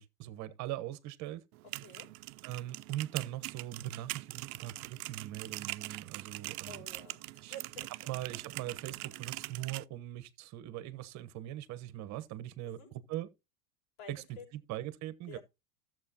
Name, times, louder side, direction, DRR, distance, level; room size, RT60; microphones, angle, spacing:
voice 1, 0.0-1.4 2.4-6.8 7.4-7.5 8.1-12.8 13.1-13.3 14.1-14.2 14.5-15.4, right 14 dB, 40° right, 1.1 m, -41 dB
sound 1, 1.5-9.8, right 19 dB, 70° right, 0.6 m, -43 dB
voice 2, 1.8-2.1 6.7-7.9 12.6-12.9 14.0-14.5 15.3-15.4, equal, 70° left, 6.4 m, -50 dB
13.0 x 7.6 x 2.9 m
supercardioid pair, 125°, 45 cm